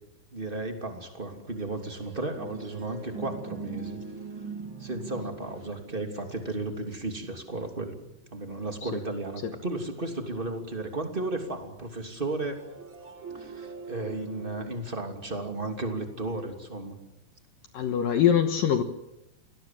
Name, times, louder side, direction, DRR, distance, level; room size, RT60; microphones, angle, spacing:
voice 1, 0.3-4.0 4.4-4.5 4.8-7.9 8.3-12.6 13.3-17.0, right 2 dB, 15° right, 4 dB, 2.1 m, -34 dB
sound 1, 1.5-9.1 12.3-16.4, right 5 dB, 40° right, 1.9 m, -43 dB
voice 2, 17.7-18.8, left 9 dB, 70° left, 8 dB, 2.2 m, -23 dB
29.0 x 20.0 x 7.5 m, 0.86 s
omnidirectional pair, 5.3 m